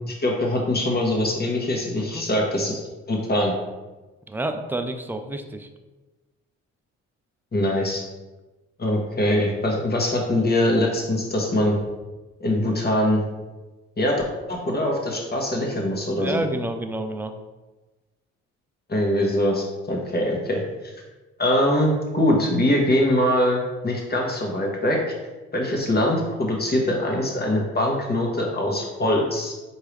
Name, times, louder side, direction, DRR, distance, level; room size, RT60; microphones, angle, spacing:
voice 1, 0.1-2.8 3.1-3.5 7.5-8.0 8.8-11.8 12.4-13.2 14.0-14.2 14.5-16.4 18.9-20.6 21.4-25.0 25.5-29.5, left 1 dB, 30° left, 0 dB, 1.3 m, -23 dB
voice 2, 4.3-5.7 16.2-17.3, right 1 dB, 5° right, 6 dB, 0.4 m, -29 dB
4.5 x 2.8 x 3.3 m, 1.2 s
hypercardioid pair, 50°, 32 cm